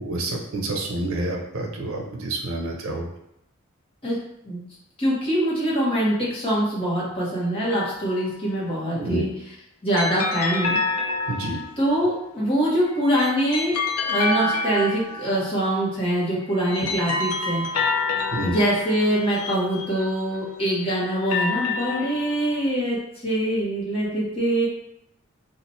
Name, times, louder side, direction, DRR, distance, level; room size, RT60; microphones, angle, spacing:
voice 1, 0.0-3.1 8.9-9.2 11.3-11.6 18.3-18.5, right 2 dB, 70° right, 1 dB, 0.6 m, -28 dB
voice 2, 5.0-9.3 9.8-10.8 11.8-13.7 14.0-17.6 18.4-23.0 23.2-24.7, right 1 dB, 25° left, -7 dB, 1.1 m, -24 dB
sound 1, 7.6-8.4 10.0-11.9 12.9-15.7 16.4-20.5 21.1-22.7, left 3 dB, 90° left, 0.5 m, -28 dB
2.8 x 2.5 x 4.1 m, 0.79 s
head